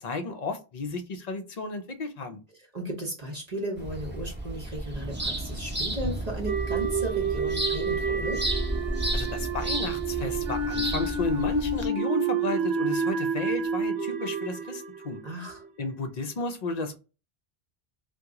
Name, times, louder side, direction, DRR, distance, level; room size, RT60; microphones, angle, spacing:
voice 1, 0.0-2.4 9.1-15.2 15.8-17.0, left 3 dB, 50° left, 0.5 m, -33 dB
voice 2, 2.7-8.4 15.2-15.6, right 1 dB, 45° right, 0.8 m, -35 dB
sound 1, 3.8-11.9, right 1 dB, 10° right, 0.7 m, -32 dB
sound 2, 4.9-13.9, right 3 dB, 30° right, 0.4 m, -47 dB
sound 3, 6.5-15.7, right 4 dB, 85° right, 0.9 m, -29 dB
2.9 x 2.2 x 3.5 m
omnidirectional pair, 1.0 m